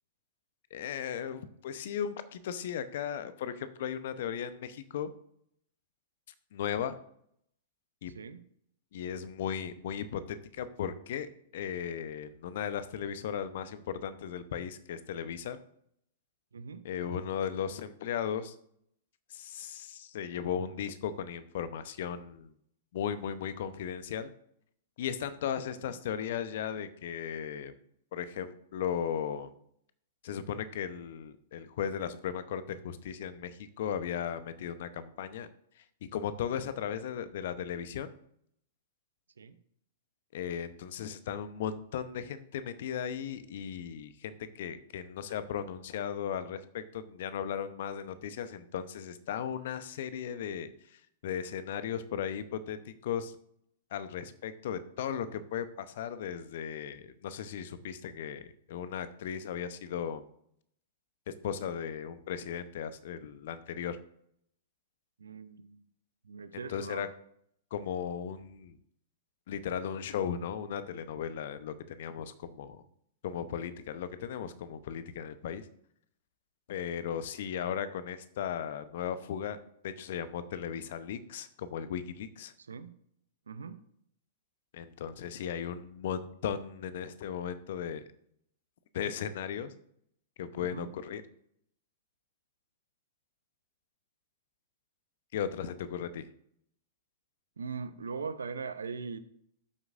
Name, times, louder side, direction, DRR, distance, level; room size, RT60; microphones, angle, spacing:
voice 1, 0.7-5.1 6.5-7.0 8.0-8.1 8.9-15.6 16.8-18.5 19.3-22.5 22.9-24.3 25.0-27.7 28.1-29.5 30.2-35.5 36.0-38.1 40.3-53.3 53.9-60.2 61.4-64.0 66.5-67.1 67.7-68.8 69.5-72.8 73.2-75.7 76.7-79.6 79.8-82.5 84.7-88.0 88.9-89.7 90.4-91.2 95.3-96.3, left 8 dB, 60° left, 12 dB, 0.8 m, -36 dB
voice 2, 16.5-16.9 25.7-25.9 39.4-39.6 65.2-65.8 66.2-67.1 82.6-82.9 83.5-83.8 90.6-90.9 97.6-99.2, right 5 dB, 75° right, 12 dB, 0.7 m, -40 dB
13.0 x 7.9 x 2.6 m, 0.69 s
figure-of-eight pair, 105°, 0 cm